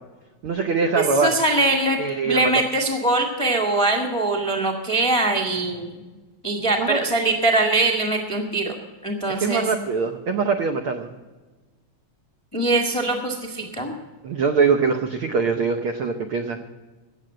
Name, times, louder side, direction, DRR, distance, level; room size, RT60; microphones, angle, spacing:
voice 1, 0.4-1.3 2.0-2.5 6.8-7.0 9.4-11.1 14.2-16.6, right 5 dB, 75° right, 5 dB, 1.2 m, -22 dB
voice 2, 0.9-2.0 2.2-6.0 6.4-8.7 9.0-9.6 12.5-13.9, right 2 dB, 20° left, 1 dB, 0.9 m, -22 dB
17.5 x 7.2 x 7.5 m, 1.3 s
omnidirectional pair, 3.5 m